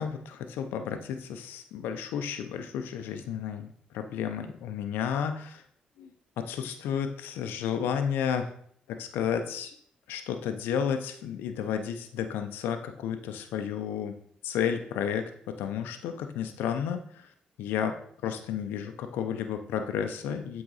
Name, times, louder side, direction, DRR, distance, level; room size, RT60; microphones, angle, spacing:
voice 1, 0.0-5.6 6.0-6.1 6.4-8.5 8.9-9.7 10.1-14.2 14.4-17.0 17.6-20.6, left 8 dB, 85° left, 7 dB, 0.6 m, -32 dB
7.8 x 3.9 x 4.1 m, 0.62 s
supercardioid pair, 70°, 3 cm